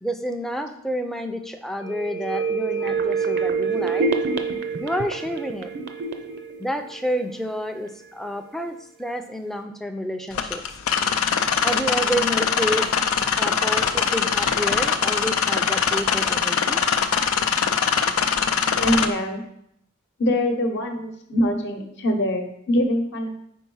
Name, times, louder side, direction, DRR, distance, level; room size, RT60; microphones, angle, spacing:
voice 1, 0.0-4.1 4.8-5.7 6.6-10.6 11.6-12.9 13.3-16.8, equal, ahead, 6 dB, 0.4 m, -29 dB
sound 1, 1.8-7.5 7.9-8.0, right 4 dB, 55° right, 0.6 m, -27 dB
sound 2, 10.3-19.1, left 7 dB, 85° left, 0.5 m, -22 dB
voice 2, 18.8-19.4 20.2-23.3, left 1 dB, 60° left, 4 dB, 0.9 m, -23 dB
4.6 x 4.6 x 5.5 m, 0.74 s
head